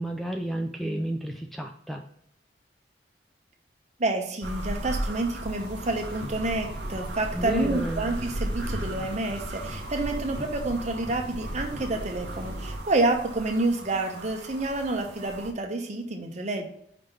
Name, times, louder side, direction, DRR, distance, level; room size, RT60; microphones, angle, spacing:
voice 1, 0.0-2.0 7.3-8.0, right 1 dB, ahead, 3 dB, 0.3 m, -31 dB
voice 2, 4.0-16.7, right 2 dB, 40° right, 4 dB, 0.9 m, -28 dB
sound 1, 4.4-15.5, right 1 dB, 70° right, 0.8 m, -36 dB
sound 2, 5.6-12.8, equal, 65° left, 2.1 m, -41 dB
5.1 x 3.6 x 5.7 m, 0.69 s
head